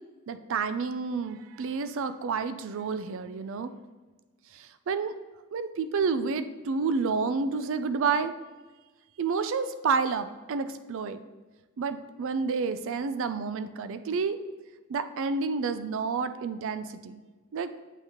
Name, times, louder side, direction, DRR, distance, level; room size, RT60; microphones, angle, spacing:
voice 1, 0.3-3.7 4.5-5.1 5.5-8.3 9.2-11.2 11.8-14.4 14.9-17.2 17.5-17.7, right 5 dB, 65° right, 11 dB, 0.4 m, -30 dB
8.1 x 5.6 x 3.0 m, 1.3 s
head